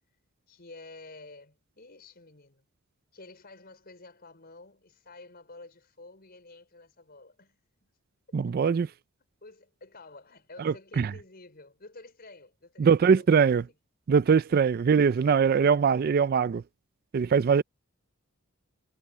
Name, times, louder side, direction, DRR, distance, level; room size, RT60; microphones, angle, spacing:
voice 1, 0.5-2.7 3.1-7.9 8.3-8.4 9.4-13.6 14.3-14.8, left 3 dB, 50° left, 5.0 m, -50 dB
voice 2, 8.3-8.9 10.6-11.1 12.8-13.6 14.1-16.6 17.1-17.6, right 6 dB, 45° right, 0.3 m, -22 dB
head